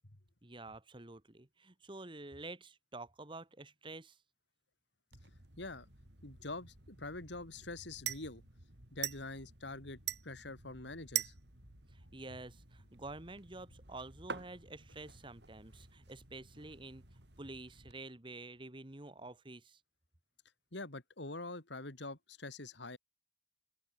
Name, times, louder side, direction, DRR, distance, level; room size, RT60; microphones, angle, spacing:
voice 1, 0.4-4.2 11.9-17.0 17.4-19.8, right 2 dB, 25° right, 1.5 m, -49 dB
sound 1, 5.1-17.9, right 10 dB, 60° right, 5.0 m, -46 dB
voice 2, 5.6-5.9 6.2-8.4 8.9-11.3 20.7-23.0, left 2 dB, 65° left, 2.7 m, -45 dB
open air
head